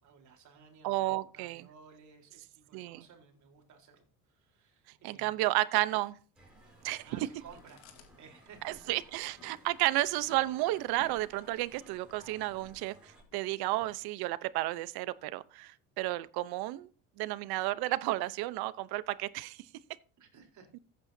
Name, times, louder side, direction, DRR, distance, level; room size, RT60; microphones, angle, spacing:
voice 1, 0.0-1.1 1.3-4.0 4.3-5.4 7.0-8.7 20.2-20.7, right 6 dB, 45° right, 3.9 m, -56 dB
voice 2, 0.8-1.7 2.7-3.1 5.0-6.2 6.8-7.2 8.6-16.9 17.2-19.6 20.7-20.8, right 18 dB, 70° right, 0.8 m, -32 dB
sound 1, 6.4-13.2, right 1 dB, 5° right, 4.8 m, -59 dB
Chewing mastication, 7.5-14.5, left 7 dB, 85° left, 2.2 m, -60 dB
15.0 x 8.9 x 2.7 m
cardioid pair, 125°, 39 cm